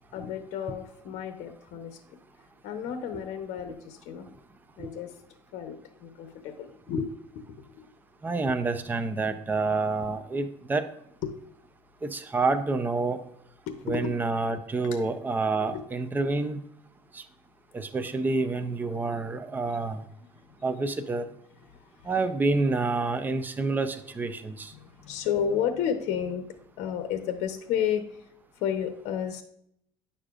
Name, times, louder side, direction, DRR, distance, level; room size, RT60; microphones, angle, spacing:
voice 1, 0.1-2.0 2.6-4.3 4.8-5.1 5.5-7.1 7.6-7.7 11.2-11.3 13.7-14.1 15.7-15.8 20.2-20.3 22.0-22.1 24.7-26.5 26.8-28.2 28.5-29.4, left 8 dB, 70° left, 7 dB, 0.9 m, -32 dB
voice 2, 8.2-10.8 12.0-13.2 13.9-16.6 17.1-17.2 17.7-20.0 20.6-21.2 22.1-24.7, right 3 dB, 15° right, 9 dB, 0.6 m, -28 dB
9.8 x 6.5 x 2.5 m, 0.73 s
cardioid pair, 125°, 12 cm